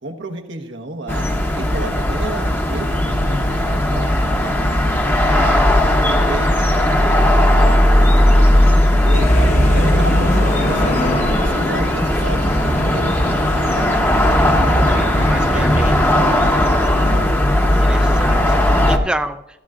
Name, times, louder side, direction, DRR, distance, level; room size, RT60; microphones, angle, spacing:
voice 1, 0.0-1.3 1.5-5.5 6.0-7.3 7.5-15.0 15.5-15.6 16.1-17.3 17.6-18.9, right 2 dB, 90° right, 3 dB, 1.1 m, -32 dB
sound 1, 1.1-19.0, left 1 dB, 10° left, 0.8 m, -16 dB
voice 2, 5.3-5.7 14.9-15.9 17.8-18.4 18.8-19.6, right 1 dB, 5° right, 7 dB, 0.3 m, -28 dB
sound 2, 9.1-17.2, left 1 dB, 45° left, 1.1 m, -23 dB
15.5 x 11.5 x 2.4 m, 0.87 s
head